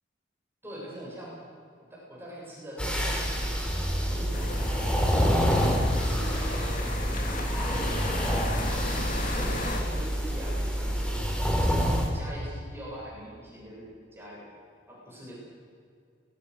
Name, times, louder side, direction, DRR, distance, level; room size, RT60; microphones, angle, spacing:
voice 1, 0.6-1.3 1.8-3.5 4.1-5.6 5.9-6.8 7.7-8.8 9.4-11.2 11.7-13.9 14.1-14.4 14.9-15.4, equal, 15° right, -6 dB, 7.6 m, -42 dB
sound 1, 2.8-12.1, equal, 5° left, 3.5 m, -27 dB
sound 2, 4.3-9.8, left 2 dB, 45° left, 3.0 m, -34 dB
24.5 x 21.0 x 6.5 m, 2.3 s
head